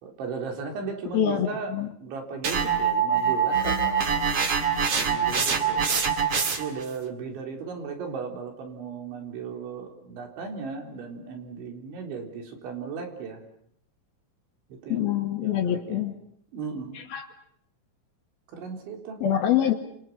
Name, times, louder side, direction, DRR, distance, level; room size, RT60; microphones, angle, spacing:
voice 1, 0.0-4.3 5.0-5.9 6.6-13.4 14.7-15.1 15.4-16.0 16.5-17.0 18.5-19.2, right 5 dB, 80° right, 3 dB, 6.4 m, -36 dB
voice 2, 1.1-1.9 14.9-16.1 17.1-17.3 19.2-19.7, left 10 dB, 60° left, 6 dB, 3.4 m, -25 dB
sound 1, 2.4-6.8, right 6 dB, 40° right, 2.6 m, -24 dB
29.0 x 28.0 x 5.7 m, 0.67 s
omnidirectional pair, 5.3 m